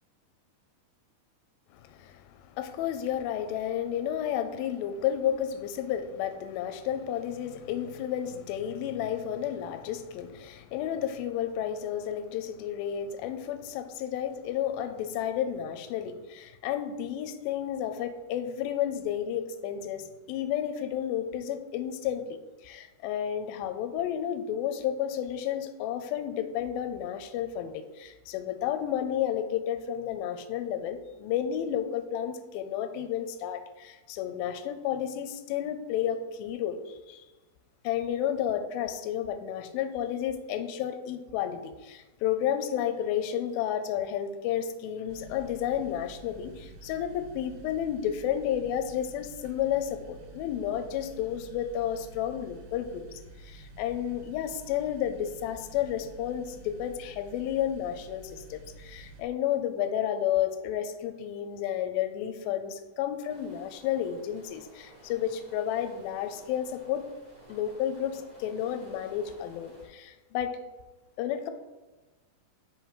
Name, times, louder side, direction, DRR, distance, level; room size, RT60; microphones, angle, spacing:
voice 1, 1.7-22.4 22.6-37.2 37.8-53.0 53.4-67.0 67.5-70.6 71.2-71.5, left 10 dB, 85° left, 8 dB, 2.3 m, -31 dB
sound 1, 45.1-59.2, right 3 dB, 80° right, 2.7 m, -49 dB
sound 2, 63.3-69.9, right 1 dB, 50° right, 0.5 m, -54 dB
7.3 x 5.2 x 3.0 m, 1.2 s
omnidirectional pair, 4.3 m